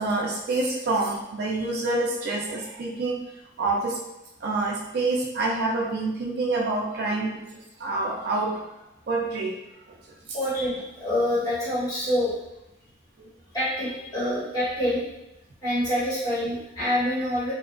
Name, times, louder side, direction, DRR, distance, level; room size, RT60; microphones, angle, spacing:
voice 1, 0.0-3.3 3.6-4.0 4.4-8.6 9.1-9.6 9.9-10.0 13.2-13.3, right 2 dB, 55° right, -1 dB, 0.3 m, -27 dB
voice 2, 10.3-12.3 13.5-15.0 15.6-17.5, left 1 dB, 20° left, -11 dB, 1.1 m, -26 dB
2.7 x 2.2 x 2.4 m, 0.93 s
head